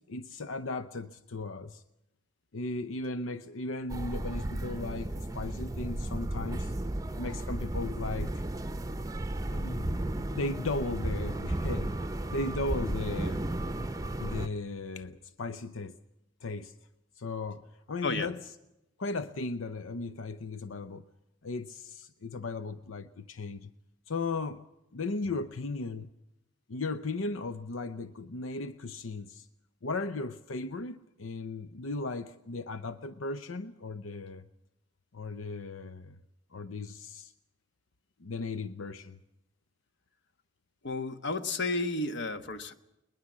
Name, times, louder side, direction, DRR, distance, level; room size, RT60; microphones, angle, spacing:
voice 1, 0.1-1.8 2.5-6.7 7.2-8.4 9.5-11.9 12.3-13.5 14.2-16.0 16.4-16.7 17.2-17.6 17.9-18.4 19.0-21.0 21.4-23.7 24.1-24.6 24.9-26.1 26.7-29.5 29.8-34.4 35.1-36.2 36.5-37.3 38.2-39.2, left 3 dB, 90° left, 12 dB, 0.7 m, -36 dB
sound 1, 3.9-14.5, right 1 dB, 15° right, 0.7 m, -34 dB
voice 2, 40.8-42.7, left 2 dB, 60° left, 10 dB, 1.3 m, -32 dB
21.5 x 20.5 x 7.4 m, 0.91 s
head